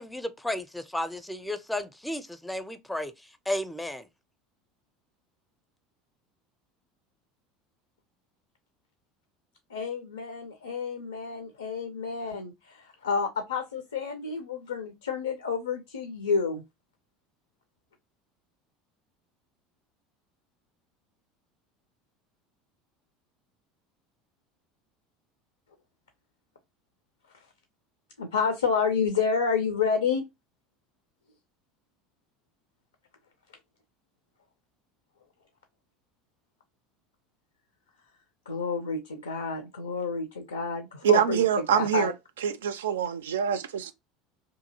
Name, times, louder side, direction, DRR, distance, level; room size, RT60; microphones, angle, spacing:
voice 1, 0.0-3.1 3.5-4.1, left 1 dB, 5° left, 0.5 m, -33 dB
voice 2, 9.7-16.6 28.2-30.2 38.5-42.1, left 5 dB, 80° left, 0.5 m, -29 dB
voice 3, 41.0-42.1 42.4-43.9, right 9 dB, 70° right, 0.3 m, -25 dB
2.8 x 2.6 x 2.7 m
figure-of-eight pair, 70°, 0 cm